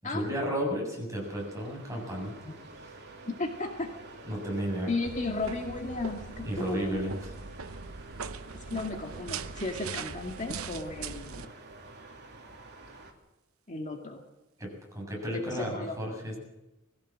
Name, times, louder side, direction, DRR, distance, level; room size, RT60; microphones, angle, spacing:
voice 1, 0.0-2.9 4.2-4.9 6.4-7.2 14.6-16.4, equal, 15° right, -1 dB, 7.5 m, -33 dB
sound 1, 1.2-13.1, right 2 dB, 55° right, 3.1 m, -49 dB
voice 2, 3.2-3.9 4.9-7.0 8.7-11.5 13.7-14.2 15.3-16.0, left 3 dB, 35° left, 2 dB, 2.0 m, -34 dB
sound 2, 5.0-11.5, right 5 dB, 85° right, 0.9 m, -41 dB
22.0 x 16.0 x 7.5 m, 0.99 s
head